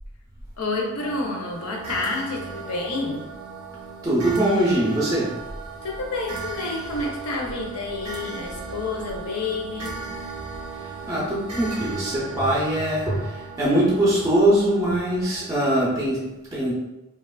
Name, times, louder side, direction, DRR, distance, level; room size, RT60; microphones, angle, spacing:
voice 1, 0.6-3.2 5.8-10.0, left 3 dB, 75° left, 1 dB, 0.6 m, -29 dB
sound 1, 1.0-15.5, right 4 dB, 85° right, 0.6 m, -37 dB
voice 2, 4.0-5.4 11.1-16.7, right 1 dB, 15° right, -6 dB, 0.4 m, -22 dB
2.8 x 2.3 x 2.2 m, 0.96 s
head